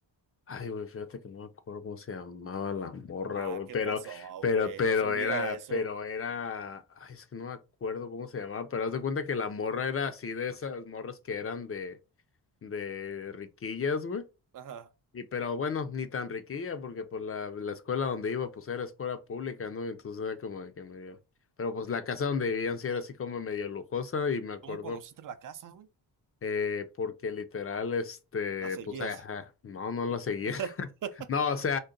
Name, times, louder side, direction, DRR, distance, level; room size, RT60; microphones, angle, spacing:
voice 1, 0.5-12.0 12.6-14.2 15.1-21.2 21.6-25.0 26.4-30.9 31.3-31.8, left 5 dB, 35° left, 0.4 m, -33 dB
voice 2, 3.9-5.8 14.5-14.9 24.6-25.9 28.6-29.2 30.6-30.7 31.0-31.1, right 8 dB, 50° right, 0.5 m, -39 dB
3.8 x 2.2 x 3.7 m
wide cardioid pair, 105°, 43 cm